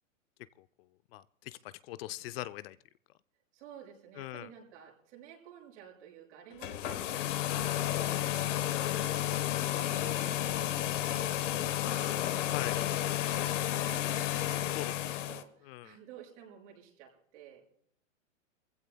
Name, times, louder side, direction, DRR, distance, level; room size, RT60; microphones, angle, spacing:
voice 1, 1.1-2.8 4.2-4.5 12.5-12.8 14.7-15.0 15.6-16.0, left 15 dB, 50° left, 14 dB, 0.5 m, -41 dB
voice 2, 3.5-17.6, right 9 dB, 60° right, -1 dB, 6.8 m, -53 dB
sound 1, 6.5-15.4, left 13 dB, 65° left, 1.2 m, -32 dB
23.5 x 15.5 x 2.2 m, 0.66 s
hypercardioid pair, 120°, 40 cm